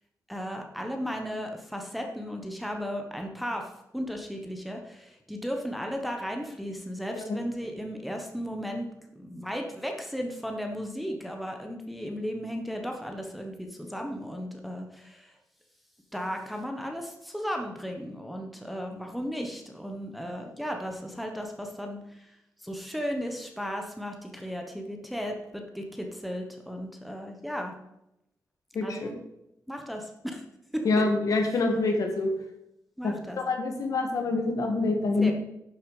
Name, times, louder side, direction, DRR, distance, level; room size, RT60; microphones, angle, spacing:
voice 1, 0.3-8.9 9.1-15.4 16.1-22.3 22.6-27.8 28.8-29.2 29.7-30.4 30.7-30.8 33.0-33.4 35.2-35.3, equal, ahead, 3 dB, 1.2 m, -35 dB
voice 2, 30.8-32.3 33.0-35.3, left 3 dB, 60° left, 4 dB, 1.8 m, -26 dB
11.5 x 7.1 x 5.0 m, 0.86 s
wide cardioid pair, 155°, 7 cm